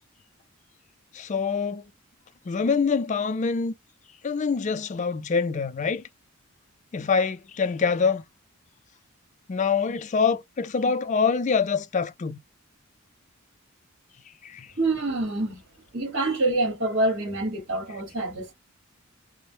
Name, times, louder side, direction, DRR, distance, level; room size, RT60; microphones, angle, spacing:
voice 1, 1.1-1.8 2.5-3.7 4.2-6.0 6.9-8.2 9.5-12.4 14.4-14.7, left 5 dB, 35° left, 0.3 m, -25 dB
voice 2, 14.8-15.6 15.9-18.5, right 2 dB, 55° right, 1.2 m, -26 dB
3.1 x 2.0 x 2.7 m
head